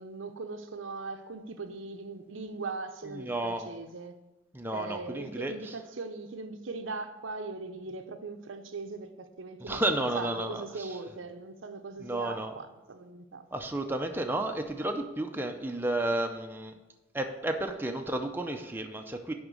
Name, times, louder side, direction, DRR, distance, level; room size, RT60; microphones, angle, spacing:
voice 1, 0.0-4.2 4.7-13.5, right 3 dB, 75° right, 0.7 m, -40 dB
voice 2, 3.0-3.7 4.5-5.8 9.6-11.0 12.0-12.6 13.5-16.8 17.1-19.3, right 1 dB, 10° right, 0.5 m, -32 dB
10.0 x 3.6 x 6.2 m
head